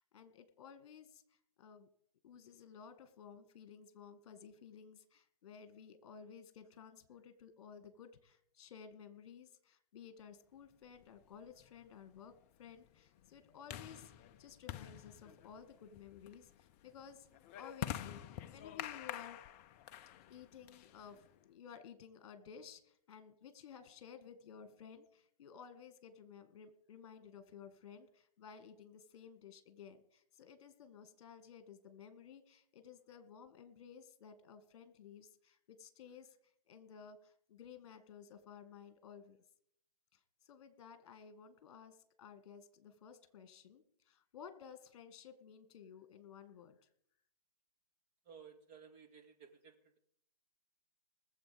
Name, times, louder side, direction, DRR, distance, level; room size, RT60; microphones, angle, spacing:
voice 1, 0.0-1.9 2.2-12.3 12.6-14.1 14.4-17.3 17.6-18.2 18.5-19.4 20.3-36.4 36.7-39.4 40.1-46.9, left 7 dB, 45° left, 9 dB, 2.2 m, -55 dB
sound 1, 11.0-21.4, left 11 dB, 20° left, 0.5 m, -48 dB
voice 2, 48.2-50.0, right 6 dB, 30° right, 2 dB, 2.3 m, -57 dB
20.0 x 7.6 x 5.4 m, 0.70 s
hypercardioid pair, 135°, 21 cm